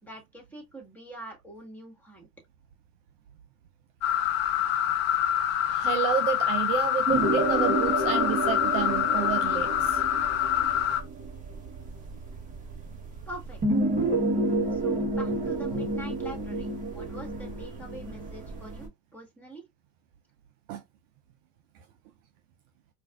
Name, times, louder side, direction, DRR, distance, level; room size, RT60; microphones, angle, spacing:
voice 1, 0.0-2.3 13.3-13.6 14.7-19.7, right 1 dB, 5° left, 1.6 m, -44 dB
sound 1, 4.0-11.0, left 10 dB, 35° left, 0.6 m, -26 dB
voice 2, 5.7-10.0 15.7-15.9 20.7-20.8, right 9 dB, 50° right, 0.6 m, -30 dB
sound 2, 7.1-18.9, right 2 dB, 15° right, 1.0 m, -30 dB
4.5 x 2.5 x 2.3 m
hypercardioid pair, 105°, 48 cm